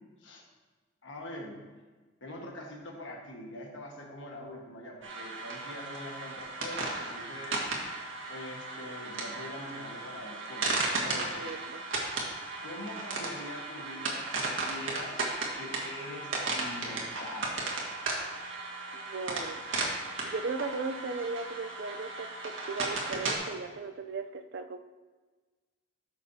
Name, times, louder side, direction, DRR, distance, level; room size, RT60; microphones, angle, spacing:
voice 1, 1.0-1.6 2.2-7.6 7.9-8.0 8.3-11.4 12.6-15.2 15.5-16.3 16.6-17.5, left 1 dB, 70° left, -1 dB, 1.4 m, -43 dB
sound 1, 5.0-23.4, right 3 dB, 75° right, 1.7 m, -35 dB
voice 2, 11.2-11.8 18.9-19.6 20.2-24.8, right 3 dB, 60° right, 7 dB, 0.5 m, -37 dB
13.0 x 6.4 x 2.8 m, 1.3 s
head